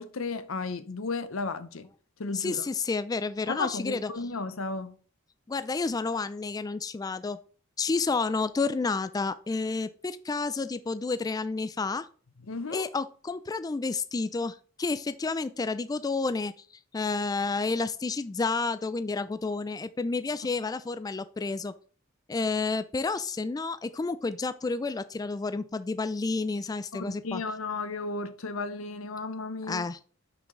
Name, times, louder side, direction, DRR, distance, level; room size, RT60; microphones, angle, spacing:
voice 1, 0.0-1.9 2.2-2.6 3.5-4.9 12.5-12.9 26.9-29.8, left 3 dB, 85° left, 0.8 m, -34 dB
voice 2, 2.3-4.1 5.5-7.4 7.8-12.1 12.7-16.5 16.9-21.7 22.3-27.4 29.7-30.0, left 4 dB, 20° left, 0.3 m, -30 dB
5.9 x 5.8 x 3.8 m
head